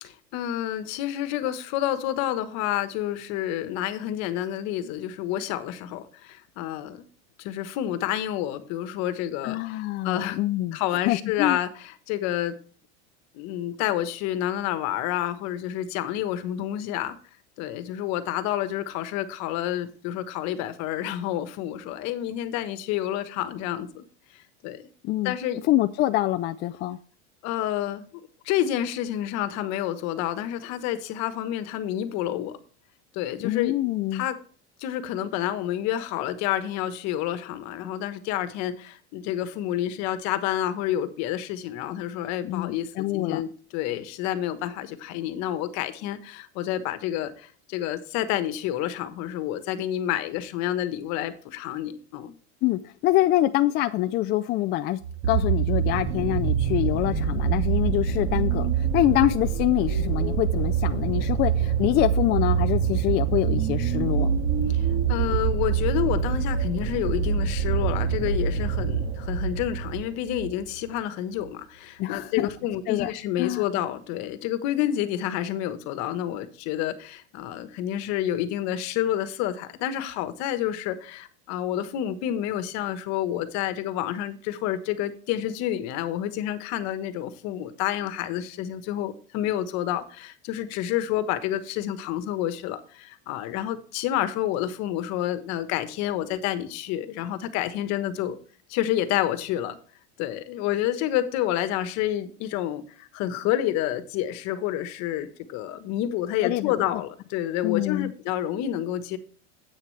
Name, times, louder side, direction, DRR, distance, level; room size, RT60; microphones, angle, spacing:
voice 1, 0.0-7.1 7.4-10.4 10.7-12.6 13.3-17.2 17.6-24.0 24.3-24.8 25.2-25.6 27.4-28.1 28.4-32.6 33.1-33.7 34.1-34.4 34.8-52.3 64.7-98.4 98.7-99.8 100.2-109.2, left 12 dB, 50° left, 1.3 m, -29 dB
voice 2, 9.4-10.8 11.1-11.6 25.0-25.3 25.7-27.0 33.4-34.2 42.4-43.4 52.6-55.0 55.3-64.3 72.0-72.5 72.9-73.1 73.4-73.6 106.4-106.7 107.6-108.1, left 15 dB, 30° left, 0.4 m, -25 dB
sound 1, 55.0-70.6 71.4-71.5, right 7 dB, 50° right, 2.0 m, -25 dB
9.9 x 8.4 x 3.3 m
supercardioid pair, 135°, 34 cm